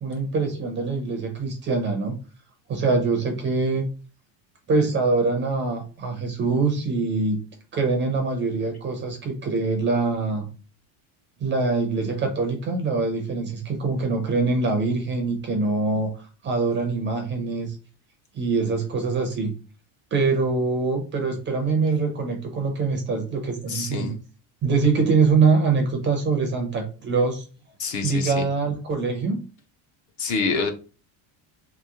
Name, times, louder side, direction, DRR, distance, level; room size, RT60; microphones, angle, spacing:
voice 1, 0.0-2.2 2.7-3.9 4.7-7.4 7.7-10.5 11.4-17.8 18.3-19.5 20.1-24.2 24.6-27.5 28.0-29.4, right 4 dB, 25° right, 4 dB, 0.4 m, -24 dB
voice 2, 23.7-24.1 27.8-28.4 30.2-30.7, left 4 dB, 40° left, 5 dB, 0.4 m, -26 dB
3.0 x 2.9 x 3.5 m, 0.35 s
cardioid pair, 165°, 49 cm